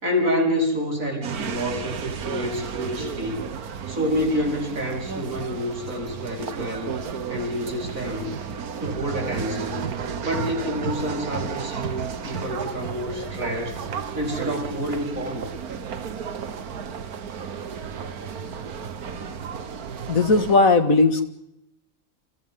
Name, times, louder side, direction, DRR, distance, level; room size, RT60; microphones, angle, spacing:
voice 1, 0.0-3.5 3.9-6.9 7.3-8.3 8.8-9.8 10.2-13.8 14.1-15.5, equal, 65° right, 1 dB, 5.0 m, -28 dB
sound 1, 1.2-20.6, right 6 dB, 85° right, 1.8 m, -33 dB
voice 2, 20.1-21.3, left 3 dB, 65° left, 8 dB, 2.4 m, -17 dB
29.0 x 28.5 x 3.8 m, 0.78 s
omnidirectional pair, 1.5 m